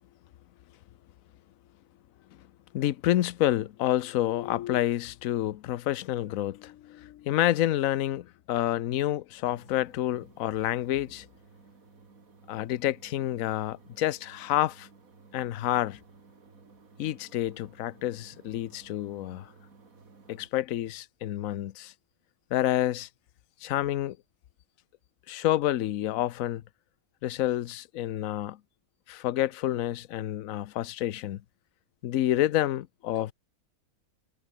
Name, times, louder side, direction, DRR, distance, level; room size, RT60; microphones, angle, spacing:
voice 1, 2.7-11.3 12.5-14.9 15.3-16.0 17.0-19.5 20.3-21.9 22.5-23.1 23.6-24.2 25.3-26.6 27.2-28.6 29.1-31.4 32.0-33.3, left 13 dB, 65° left, 1.1 m, -28 dB
sound 1, 9.5-20.5, right 4 dB, 65° right, 3.1 m, -56 dB
omnidirectional pair, 1.6 m